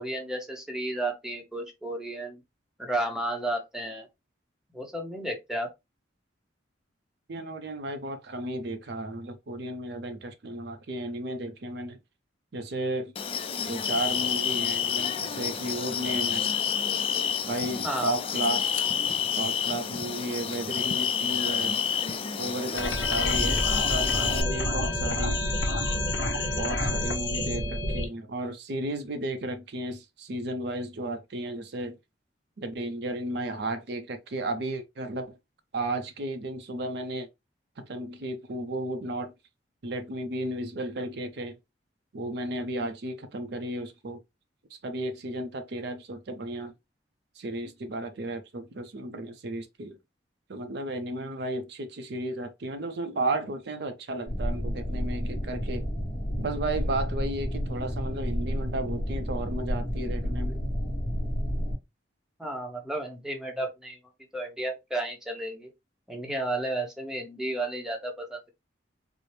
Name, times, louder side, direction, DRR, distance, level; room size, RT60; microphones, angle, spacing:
voice 1, 0.0-2.4 2.8-4.1 4.7-5.7 17.8-18.1 62.4-64.0 64.3-65.7 66.1-68.5, right 1 dB, 5° right, 0.7 m, -32 dB
voice 2, 7.3-12.0 12.5-13.1 13.6-16.5 17.5-18.7 19.4-21.8 22.4-25.4 26.6-32.0 32.6-35.4 35.7-37.3 37.8-39.3 39.8-41.6 42.1-44.2 44.7-46.7 47.4-50.0 50.5-55.9 56.4-60.6, right 1 dB, 60° right, 0.5 m, -34 dB
sound 1, 13.2-24.4, left 7 dB, 30° left, 0.3 m, -29 dB
sound 2, 22.8-28.1, left 1 dB, 75° left, 1.1 m, -28 dB
sound 3, 54.3-61.8, equal, 45° left, 1.0 m, -30 dB
4.3 x 2.0 x 3.1 m
head